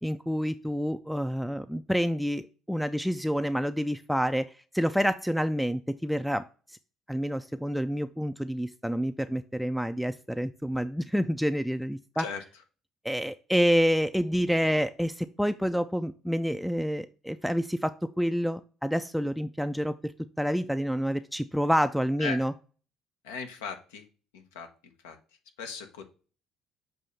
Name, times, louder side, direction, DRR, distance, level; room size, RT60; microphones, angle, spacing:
voice 1, 0.0-2.4 2.7-6.4 7.1-12.3 13.0-20.1 20.4-22.5, equal, ahead, 9 dB, 0.4 m, -28 dB
voice 2, 23.2-24.0 24.3-24.7 25.0-25.2 25.6-26.0, left 6 dB, 80° left, 5 dB, 0.9 m, -37 dB
6.9 x 2.7 x 5.6 m, 0.38 s
hypercardioid pair, 60°, 0 cm